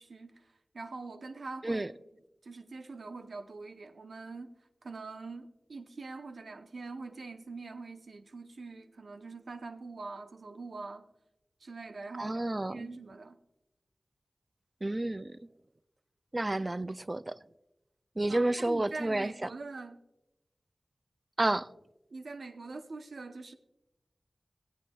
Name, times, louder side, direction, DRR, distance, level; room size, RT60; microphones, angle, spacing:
voice 1, 0.0-1.9 2.4-4.5 4.8-11.1 11.6-12.4 12.7-13.4 18.3-20.0 22.1-23.5, right 3 dB, 85° right, 0.8 m, -43 dB
voice 2, 12.2-12.9 14.8-15.4 16.3-17.4 18.2-19.5 21.4-21.7, right 2 dB, 30° right, 0.3 m, -30 dB
20.5 x 8.4 x 2.3 m
wide cardioid pair, 90°, 0 cm